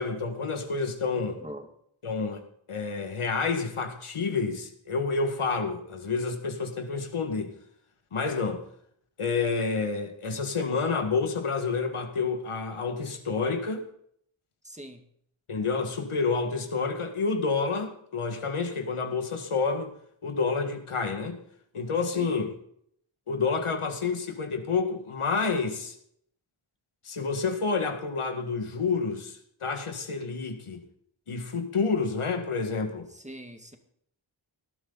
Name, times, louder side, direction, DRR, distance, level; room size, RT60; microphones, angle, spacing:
voice 1, 0.0-1.4 2.0-2.4 2.7-7.5 8.1-8.6 9.2-13.8 15.5-19.9 20.2-21.4 21.7-22.5 23.3-26.0 27.0-30.8 31.3-33.1, left 4 dB, 90° left, 6 dB, 1.9 m, -29 dB
voice 2, 14.6-15.0 22.1-22.3 33.1-33.8, right 1 dB, 15° right, 5 dB, 2.1 m, -43 dB
18.5 x 12.0 x 4.0 m, 0.67 s
wide cardioid pair, 65°, 49 cm